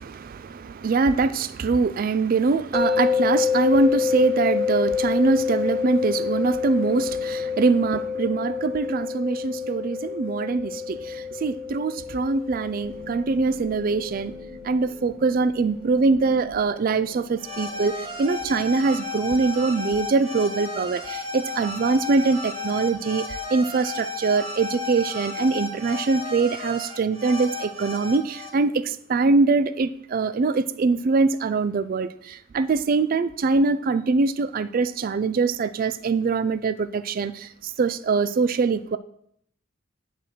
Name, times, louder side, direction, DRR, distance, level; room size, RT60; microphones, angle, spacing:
voice 1, 0.0-14.3 14.6-39.0, right 4 dB, 45° right, 13 dB, 0.4 m, -23 dB
sound 1, 2.7-15.8, left 6 dB, 5° left, 1.2 m, -28 dB
sound 2, 12.8-19.5, left 2 dB, 70° right, 2.5 m, -47 dB
sound 3, 17.4-28.5, left 3 dB, 30° right, 1.8 m, -33 dB
10.0 x 4.5 x 6.5 m, 0.70 s
head